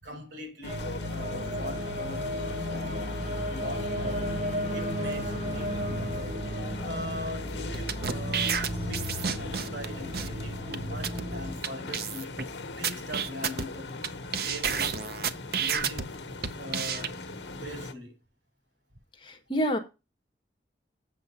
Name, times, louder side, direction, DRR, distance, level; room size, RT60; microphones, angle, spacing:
voice 1, 0.0-2.3 2.7-3.1 3.5-4.4 4.7-6.5 6.8-12.4 12.8-13.9 14.4-15.0 15.6-16.2 16.6-17.2 17.5-18.2, left 1 dB, 85° right, 5.1 m, -41 dB
sound 1, 0.6-17.9, left 3 dB, 80° left, 1.1 m, -40 dB
sound 2, 0.6-11.6, equal, 35° right, 4.6 m, -34 dB
sound 3, 7.7-9.8 10.1-10.3 10.7-10.8 11.0-11.2 11.6-11.7 11.9-12.4 12.8-14.1 14.3-16.0 16.4-17.1, right 7 dB, 55° right, 0.7 m, -30 dB
voice 2, 19.2-19.8, equal, 30° left, 1.5 m, -28 dB
7.8 x 6.8 x 5.6 m
head